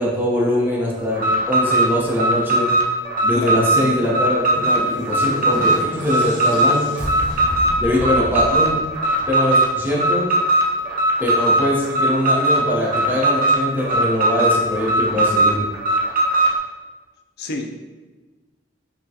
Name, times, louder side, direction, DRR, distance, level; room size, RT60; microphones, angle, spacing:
voice 1, 0.0-2.7 3.2-6.8 7.8-8.8 9.3-10.3 11.2-15.6, left 1 dB, 10° right, -4 dB, 0.8 m, -22 dB
Alarm, 1.1-16.6, right 1 dB, 50° right, 0.6 m, -19 dB
sound 1, 4.1-9.5, equal, 75° right, 1.1 m, -32 dB
voice 2, 17.4-17.8, left 2 dB, 60° left, 4 dB, 0.5 m, -28 dB
5.7 x 2.2 x 2.7 m, 1.3 s
head